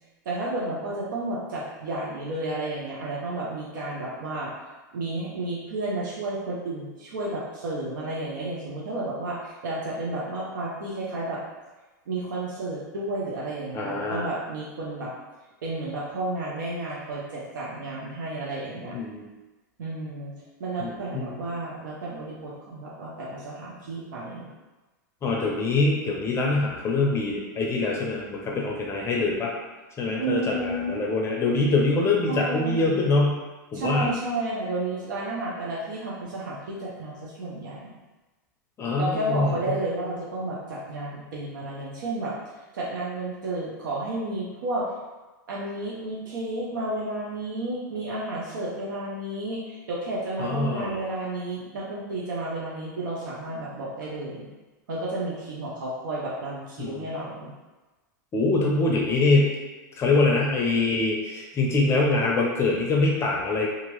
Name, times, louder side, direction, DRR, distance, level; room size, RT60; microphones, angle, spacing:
voice 1, 0.2-4.5 4.9-11.4 12.1-15.1 15.6-19.0 19.8-20.3 20.6-24.5 30.2-30.9 32.3-33.0 33.7-37.9 39.0-42.3 42.7-44.9 45.5-54.5 54.9-57.5, right 2 dB, 80° right, -5 dB, 0.7 m, -32 dB
voice 2, 13.7-14.3 18.9-19.3 20.8-21.4 25.2-29.5 30.0-33.4 33.7-34.1 38.8-39.5 50.4-51.0 56.8-57.1 58.3-59.5 60.0-63.7, left 3 dB, 25° left, -1 dB, 0.5 m, -24 dB
2.8 x 2.5 x 3.0 m, 1.2 s
hypercardioid pair, 120°, 10 cm